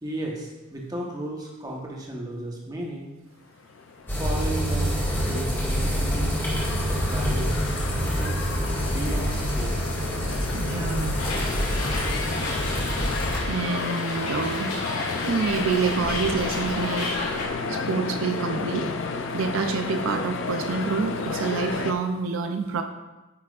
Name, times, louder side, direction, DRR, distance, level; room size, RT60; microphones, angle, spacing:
voice 1, 0.0-3.1 4.1-5.0 5.2-6.3 6.9-7.6 7.9-8.5 8.8-9.9, right 1 dB, 20° right, -1 dB, 1.1 m, -34 dB
sound 1, 3.6-21.9, left 4 dB, 60° left, 0.5 m, -32 dB
sound 2, 4.1-13.4, equal, 10° left, 1.8 m, -26 dB
voice 2, 10.5-11.2 13.5-14.7 15.2-18.9 19.3-22.8, right 5 dB, 70° right, 6 dB, 0.5 m, -28 dB
Hiss, 11.2-17.5, left 2 dB, 90° left, 2.3 m, -32 dB
9.6 x 5.9 x 2.4 m, 1.1 s
head